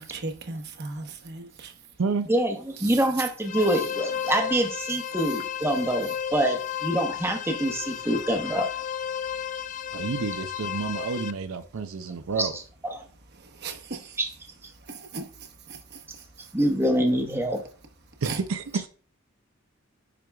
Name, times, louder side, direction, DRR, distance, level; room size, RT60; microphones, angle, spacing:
voice 1, 0.0-2.0 2.8-3.0 5.3-5.4 9.2-9.9 13.3-14.2 14.7-16.6 18.2-18.4, right 4 dB, 50° right, 1.0 m, -39 dB
voice 2, 2.3-8.7 12.4-12.5 12.8-13.0 14.2-14.3 16.5-17.6, right 1 dB, 10° right, 0.8 m, -25 dB
sound 1, 3.4-11.3, left 9 dB, 40° left, 0.4 m, -33 dB
voice 3, 9.9-12.5 18.2-18.9, right 5 dB, 80° right, 0.5 m, -29 dB
9.8 x 4.6 x 2.3 m
head